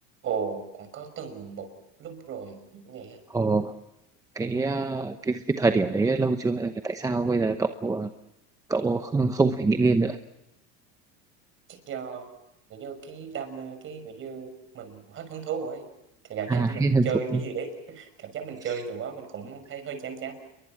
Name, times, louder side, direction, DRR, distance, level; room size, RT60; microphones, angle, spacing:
voice 1, 0.2-1.7 2.0-3.2 11.7-12.3 12.7-15.8 16.2-20.3, right 6 dB, 40° right, 9 dB, 5.7 m, -35 dB
voice 2, 3.3-3.8 4.3-8.1 8.7-10.2 16.5-17.4, right 3 dB, 10° right, 8 dB, 0.9 m, -24 dB
29.5 x 23.0 x 6.1 m, 0.89 s
cardioid pair, 145°, 33 cm